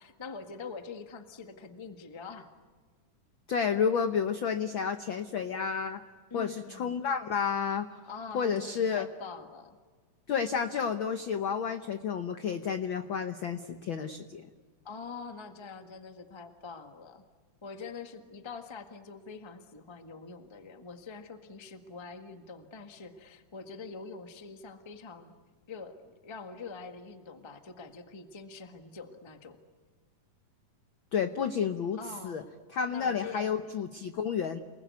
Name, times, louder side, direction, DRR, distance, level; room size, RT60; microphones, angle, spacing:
voice 1, 0.0-2.5 6.3-7.0 8.0-9.8 14.8-17.3 17.6-25.3 25.7-29.6 32.0-32.4 32.9-33.6, left 4 dB, 30° left, 7 dB, 0.5 m, -44 dB
voice 2, 3.5-6.0 6.3-8.0 8.3-9.1 10.3-14.5 31.1-32.0 32.2-32.4 32.7-34.6, left 6 dB, 85° left, 9 dB, 1.1 m, -31 dB
29.0 x 20.5 x 9.5 m, 1.5 s
omnidirectional pair, 3.7 m